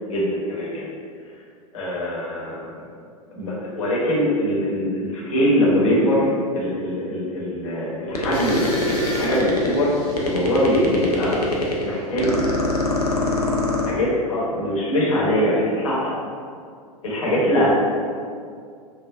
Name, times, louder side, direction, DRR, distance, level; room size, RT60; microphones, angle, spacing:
voice 1, 0.1-0.9 1.7-2.6 3.3-6.3 6.5-9.9 10.2-11.4 11.8-12.4 13.8-16.1 17.0-17.7, equal, 60° left, -6 dB, 0.9 m, -22 dB
sound 1, 8.1-9.8 10.1-11.8 12.2-14.0, left 3 dB, 85° left, 0.4 m, -23 dB
sound 2, 8.3-12.1, left 1 dB, 30° left, 0.6 m, -37 dB
3.3 x 2.1 x 2.4 m, 2.2 s
figure-of-eight pair, 90°, 19 cm